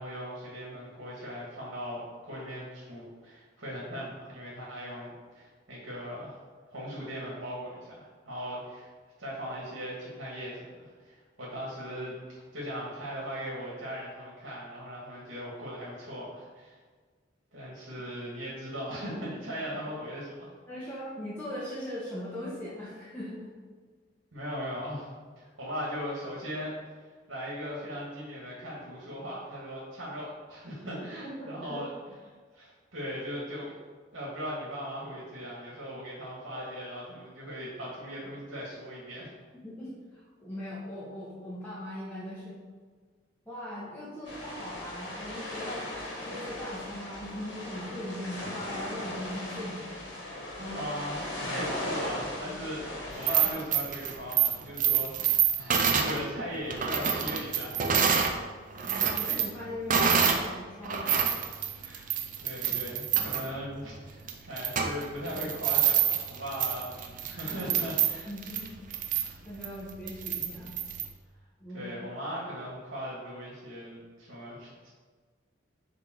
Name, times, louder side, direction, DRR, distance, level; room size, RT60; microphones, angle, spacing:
voice 1, 0.0-6.4 6.7-8.9 9.2-16.8 17.5-20.5 20.8-20.9 24.3-25.1 25.4-32.2 32.5-33.7 34.1-39.3 50.3-57.8 61.8-62.1 62.4-68.3 71.7-74.9, equal, 80° right, -5 dB, 1.9 m, -39 dB
voice 2, 20.7-23.5 31.2-31.8 39.6-42.6 43.4-45.8 46.2-49.8 59.0-61.2 68.2-68.7 69.4-70.7 71.6-72.0 72.3-72.4, left 1 dB, 10° left, -10 dB, 1.3 m, -39 dB
sound 1, 44.2-53.5, left 1 dB, 70° left, 1.7 m, -38 dB
sound 2, 53.1-58.4 58.7-60.5 60.8-71.1, right 8 dB, 40° right, 0.6 m, -28 dB
6.9 x 3.6 x 4.5 m, 1.5 s
head